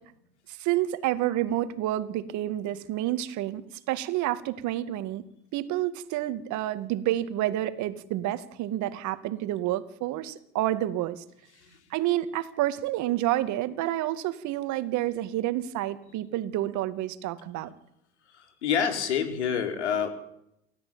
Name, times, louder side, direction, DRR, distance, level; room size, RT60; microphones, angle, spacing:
voice 1, 0.5-5.2 5.5-11.2 11.9-17.7, right 14 dB, 60° right, 11 dB, 2.4 m, -29 dB
voice 2, 18.3-20.1, left 7 dB, 90° left, 6 dB, 4.5 m, -27 dB
29.0 x 14.0 x 9.0 m, 0.76 s
hypercardioid pair, 85°, 33 cm